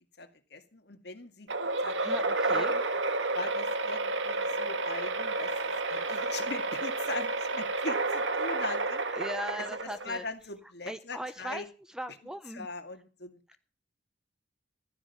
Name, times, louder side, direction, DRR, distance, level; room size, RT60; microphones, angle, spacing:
voice 1, 0.2-1.5 1.8-2.8 3.3-9.3 9.6-11.7 12.5-13.6, left 3 dB, 60° left, 7 dB, 2.2 m, -41 dB
sound 1, 1.5-10.3, right 2 dB, 75° right, 1.6 m, -30 dB
voice 2, 2.0-2.7 9.1-10.2 10.9-11.7 11.9-12.7, equal, 5° right, 11 dB, 0.8 m, -38 dB
Crowd, 5.1-10.3, right 3 dB, 45° right, 4.7 m, -51 dB
15.0 x 13.0 x 5.7 m, 0.36 s
head